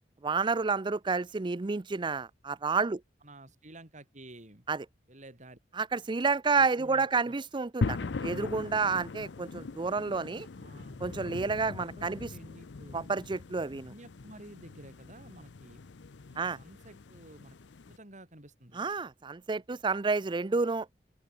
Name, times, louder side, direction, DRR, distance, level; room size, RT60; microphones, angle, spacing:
voice 1, 0.2-3.0 4.7-4.9 5.8-10.5 11.0-12.3 12.9-13.9 16.4-16.6 18.7-20.9, right 4 dB, 25° right, 0.5 m, -30 dB
voice 2, 3.2-4.6 5.1-5.6 6.6-7.3 10.6-11.0 11.8-13.0 13.8-15.8 16.3-17.6 17.9-18.8, right 1 dB, 45° right, 5.9 m, -51 dB
sound 1, 7.8-18.0, left 3 dB, 80° left, 0.6 m, -40 dB
open air
head